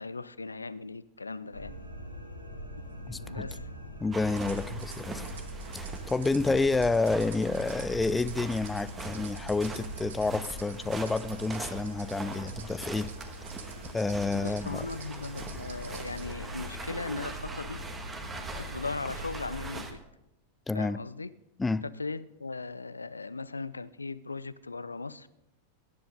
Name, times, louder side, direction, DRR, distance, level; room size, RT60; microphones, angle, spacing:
voice 1, 0.0-1.7 3.3-3.7 14.3-17.8 18.3-20.0 20.7-21.3 21.8-25.3, left 3 dB, 80° left, 17 dB, 0.4 m, -38 dB
sound 1, 1.5-19.8, equal, 85° right, 1.9 m, -43 dB
voice 2, 3.1-3.5 4.0-5.3 5.7-13.1 13.9-14.8 20.7-21.0 21.6-21.8, left 3 dB, 10° left, 17 dB, 0.4 m, -29 dB
sound 2, 4.1-19.9, right 3 dB, 20° right, 1.5 m, -42 dB
sound 3, 4.3-16.3, right 7 dB, 60° right, 1.3 m, -50 dB
18.0 x 10.0 x 3.7 m, 0.88 s
figure-of-eight pair, 90°, 0 cm